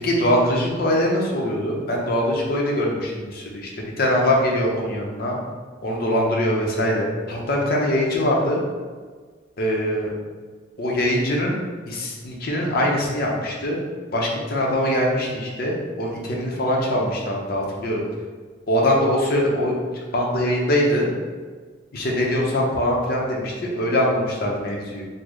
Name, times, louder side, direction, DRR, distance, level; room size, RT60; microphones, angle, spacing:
voice 1, 0.0-3.7 4.0-5.4 5.8-8.6 9.6-10.1 10.8-11.6 11.9-13.8 14.1-18.0 18.7-19.7 20.1-21.1 21.9-25.1, left 1 dB, 55° left, -2 dB, 0.7 m, -22 dB
3.7 x 2.1 x 3.1 m, 1.5 s
head